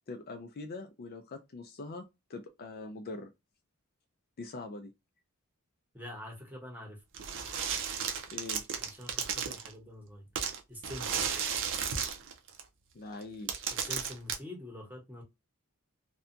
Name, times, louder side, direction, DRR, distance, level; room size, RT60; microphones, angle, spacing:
voice 1, 0.1-3.3 4.4-4.9 8.3-8.6 12.9-13.5, left 3 dB, 45° left, 0.4 m, -43 dB
voice 2, 5.9-7.0 8.8-10.3 10.7-11.3 13.7-15.2, left 1 dB, 10° right, 0.9 m, -45 dB
sound 1, 7.1-9.7 10.4-12.6 13.2-13.3 13.5-14.4, right 7 dB, 60° right, 0.5 m, -34 dB
2.6 x 2.2 x 2.5 m
head